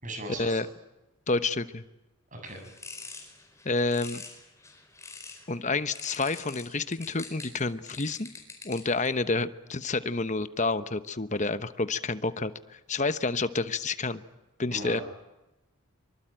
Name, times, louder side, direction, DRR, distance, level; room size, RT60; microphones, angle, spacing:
voice 1, 0.0-0.6 2.3-2.6 14.7-15.0, right 2 dB, 35° right, 4 dB, 7.4 m, -38 dB
voice 2, 1.3-1.8 3.6-4.2 5.5-8.3 8.6-14.2 14.6-15.0, left 3 dB, 35° left, 12 dB, 1.1 m, -29 dB
sound 1, 2.5-5.5 5.9-9.1, left 4 dB, 15° left, 4.5 m, -45 dB
24.5 x 24.5 x 9.1 m, 1.0 s
head